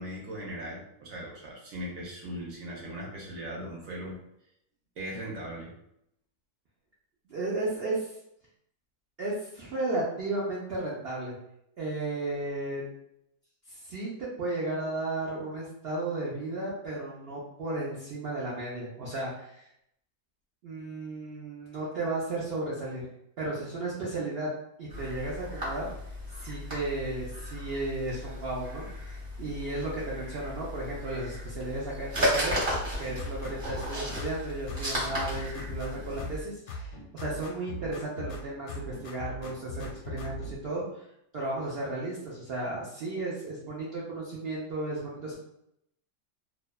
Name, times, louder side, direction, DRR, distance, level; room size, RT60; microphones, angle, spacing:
voice 1, 0.0-4.2 5.0-5.7, equal, 65° right, -3 dB, 1.0 m, -39 dB
voice 2, 7.3-8.1 9.2-11.3 11.8-12.8 13.7-19.6 20.6-23.0 23.4-24.5 24.8-25.9 26.3-28.9 29.4-32.6 33.0-41.1 41.3-45.3, right 2 dB, 85° right, -5 dB, 0.5 m, -34 dB
sound 1, 24.9-36.4, equal, 40° right, 1.1 m, -35 dB
sound 2, 32.7-34.4 34.7-36.4 36.7-38.4 38.7-40.6, left 1 dB, 85° left, 1.2 m, -39 dB
2.6 x 2.2 x 2.2 m, 0.77 s
omnidirectional pair, 1.7 m